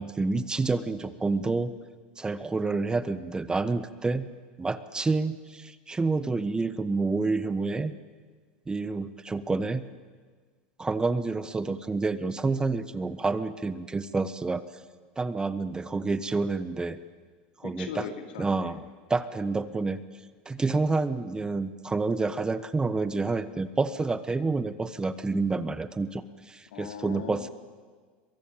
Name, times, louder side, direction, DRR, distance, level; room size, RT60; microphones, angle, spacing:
voice 1, 0.0-1.7 2.2-4.3 4.6-7.9 8.7-9.8 10.8-14.6 15.2-17.0 17.6-18.0 18.4-18.8 19.1-20.0 20.4-27.5, right 3 dB, 15° right, 13 dB, 1.2 m, -28 dB
voice 2, 17.6-18.8 26.7-27.5, left 7 dB, 80° left, 6 dB, 3.0 m, -39 dB
22.5 x 22.5 x 9.1 m, 1.6 s
hypercardioid pair, 100°, 5 cm